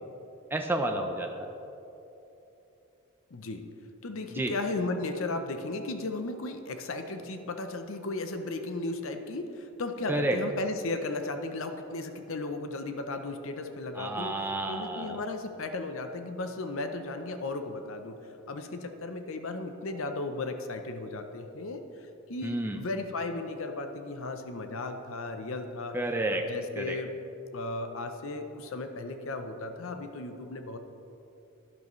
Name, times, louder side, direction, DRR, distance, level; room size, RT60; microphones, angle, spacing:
voice 1, 0.5-1.5 4.3-4.5 10.1-10.4 14.0-15.2 22.4-22.8 25.9-26.4 26.8-27.0, right 1 dB, 10° right, 3 dB, 0.5 m, -30 dB
voice 2, 3.3-3.7 4.0-14.4 14.7-18.2 18.5-26.0 26.3-27.1 27.5-30.8, left 2 dB, 60° left, 7 dB, 0.6 m, -35 dB
12.0 x 11.0 x 3.1 m, 3.0 s
head